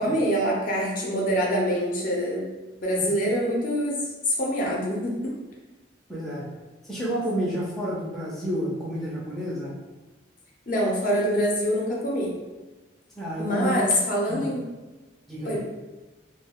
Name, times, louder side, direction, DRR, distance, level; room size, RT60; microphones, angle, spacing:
voice 1, 0.0-2.5 2.8-4.0 4.3-5.3 10.7-12.3 13.4-14.6 15.4-15.6, equal, 45° left, -3 dB, 0.6 m, -25 dB
voice 2, 6.1-6.5 6.8-9.7 13.2-13.8 14.3-14.5 15.3-15.6, right 1 dB, ahead, -7 dB, 0.4 m, -30 dB
2.3 x 2.2 x 3.5 m, 1.2 s
head